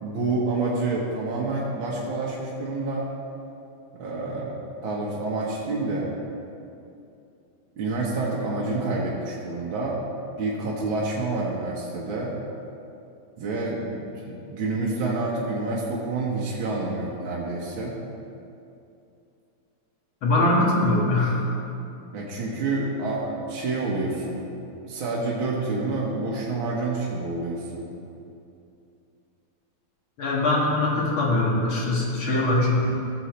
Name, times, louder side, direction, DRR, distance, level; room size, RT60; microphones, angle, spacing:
voice 1, 0.0-3.1 3.9-6.1 7.7-10.0 10.4-12.4 13.4-18.0 22.1-24.5 24.8-27.9, right 3 dB, 70° right, -5 dB, 1.9 m, -28 dB
voice 2, 20.2-21.4 30.2-32.9, left 2 dB, 70° left, -4 dB, 2.6 m, -22 dB
15.5 x 7.0 x 3.2 m, 2.6 s
omnidirectional pair, 2.3 m